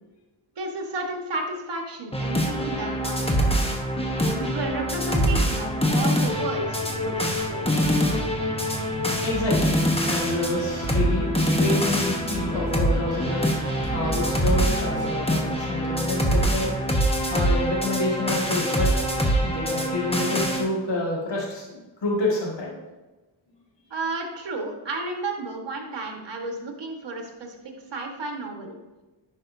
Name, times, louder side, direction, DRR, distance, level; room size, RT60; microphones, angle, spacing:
voice 1, 0.6-3.6 4.1-7.7 23.9-27.5 27.9-28.8, right 2 dB, 60° right, 2 dB, 1.5 m, -32 dB
sound 1, 2.1-20.6, equal, 10° left, 1.1 m, -24 dB
sound 2, 4.1-15.1, right 2 dB, 40° right, 1.4 m, -35 dB
voice 2, 9.2-9.8 10.0-13.4 13.9-16.7 17.3-18.9 19.4-22.7, left 2 dB, 65° left, -4 dB, 2.1 m, -28 dB
10.5 x 5.5 x 2.7 m, 1.1 s
cardioid pair, 75°, 47 cm